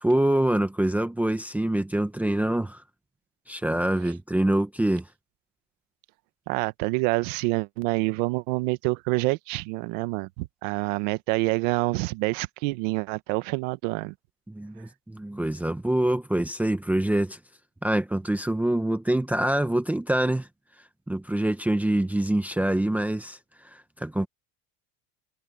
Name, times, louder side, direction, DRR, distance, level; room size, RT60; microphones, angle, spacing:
voice 1, 0.0-2.8 3.5-5.1 14.5-17.4 17.8-20.5 21.1-24.3, right 1 dB, 5° right, 1.0 m, -25 dB
voice 2, 6.5-14.1, right 23 dB, 70° right, 1.2 m, -27 dB
cardioid pair, 150°, 40 cm